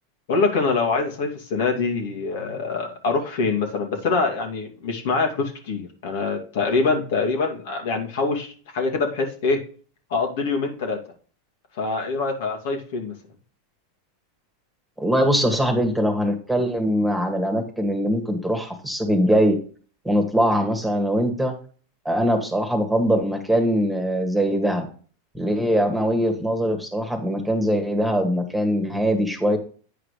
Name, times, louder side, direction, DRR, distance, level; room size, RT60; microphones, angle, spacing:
voice 1, 0.3-9.6 10.1-11.0 11.7-13.1, left 4 dB, 70° left, 3 dB, 2.5 m, -24 dB
voice 2, 15.0-19.6 20.1-21.5 22.1-24.9 25.3-29.6, equal, 5° right, 4 dB, 2.0 m, -22 dB
9.2 x 4.9 x 5.0 m, 0.41 s
hypercardioid pair, 105°, 0 cm